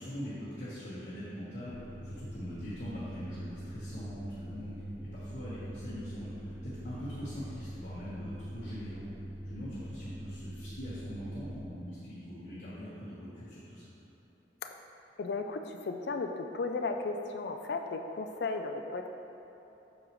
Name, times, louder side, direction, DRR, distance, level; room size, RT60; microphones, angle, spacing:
voice 1, 0.0-4.8 5.1-9.0 9.4-13.9, equal, 45° left, -11 dB, 1.3 m, -42 dB
sound 1, 1.7-11.7, right 1 dB, 5° right, 1.4 m, -43 dB
voice 2, 15.2-19.1, left 3 dB, 65° left, 5 dB, 0.4 m, -35 dB
8.5 x 6.3 x 3.1 m, 3.0 s
head